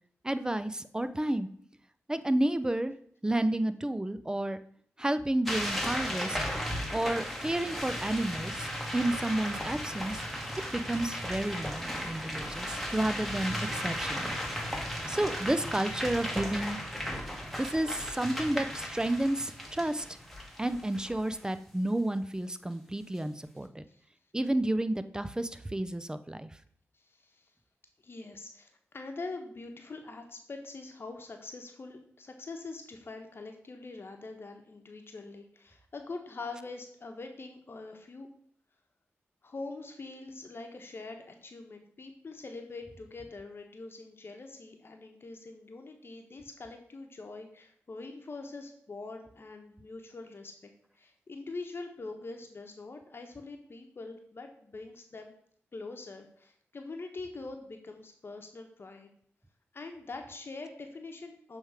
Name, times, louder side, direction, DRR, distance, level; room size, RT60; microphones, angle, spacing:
voice 1, 0.2-1.5 2.1-2.9 3.2-4.6 5.0-6.4 6.9-10.2 10.7-14.3 15.1-16.8 17.6-20.1 20.6-23.9 24.3-26.5, right 1 dB, 15° right, 12 dB, 0.5 m, -31 dB
sound 1, 5.5-21.4, equal, ahead, 1.4 m, -36 dB
voice 2, 26.9-27.5 28.0-38.3 39.4-50.7 50.9-55.3 55.7-59.1 59.7-61.6, left 3 dB, 55° left, 4 dB, 1.0 m, -44 dB
7.1 x 3.4 x 4.7 m, 0.63 s
cardioid pair, 50°, 5 cm